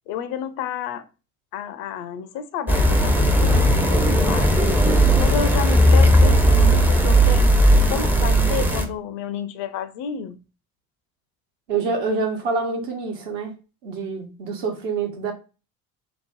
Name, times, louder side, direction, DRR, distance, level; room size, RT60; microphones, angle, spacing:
voice 1, 0.1-1.0 1.5-4.5 5.2-7.6 7.9-10.4, left 8 dB, 55° left, 0.5 m, -30 dB
sound 1, 2.7-8.8, equal, 5° right, 0.4 m, -16 dB
voice 2, 11.7-13.5 13.8-15.3, right 4 dB, 65° right, 0.9 m, -26 dB
2.9 x 2.0 x 3.0 m
figure-of-eight pair, 55°, 42 cm